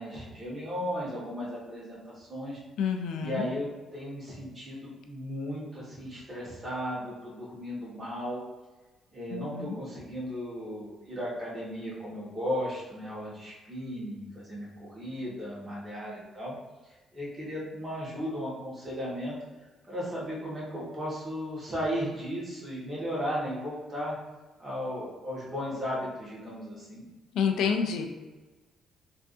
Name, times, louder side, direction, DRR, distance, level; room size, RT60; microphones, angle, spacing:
voice 1, 0.0-2.6 3.2-8.4 9.1-16.6 17.1-19.3 19.9-24.1 24.6-27.0, equal, 30° right, -6 dB, 1.4 m, -35 dB
voice 2, 2.8-3.5 9.3-9.8 27.3-28.0, left 6 dB, 80° left, 5 dB, 0.3 m, -28 dB
3.4 x 2.6 x 2.6 m, 1.2 s
cardioid pair, 100°, 0 cm